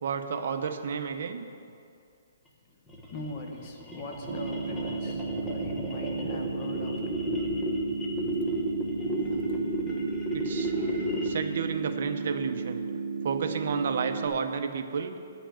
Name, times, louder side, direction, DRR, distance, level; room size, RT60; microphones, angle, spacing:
voice 1, 0.0-1.5 10.3-12.8 13.2-15.2, right 6 dB, 55° right, 7 dB, 0.8 m, -32 dB
sound 1, 2.9-11.6, equal, 10° left, 1.0 m, -33 dB
voice 2, 3.1-5.2 5.5-7.1 9.2-9.8, left 2 dB, 30° left, 2 dB, 1.2 m, -41 dB
sound 2, 4.3-14.3, right 4 dB, 90° right, 0.9 m, -34 dB
10.5 x 5.8 x 8.7 m, 2.4 s
hypercardioid pair, 165°, 0 cm